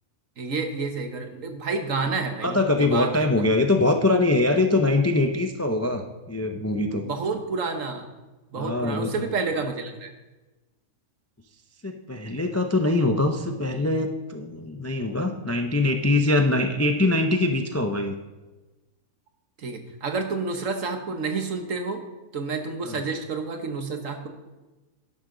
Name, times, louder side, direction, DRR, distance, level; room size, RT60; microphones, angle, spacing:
voice 1, 0.4-3.3 7.0-8.1 8.5-10.1 19.6-22.0 22.3-24.3, right 4 dB, 65° right, 5 dB, 1.6 m, -29 dB
voice 2, 2.4-7.0 8.6-9.3 11.8-18.1 22.8-23.0, left 2 dB, 20° left, 5 dB, 0.4 m, -23 dB
11.5 x 11.0 x 3.9 m, 1.1 s
omnidirectional pair, 1.5 m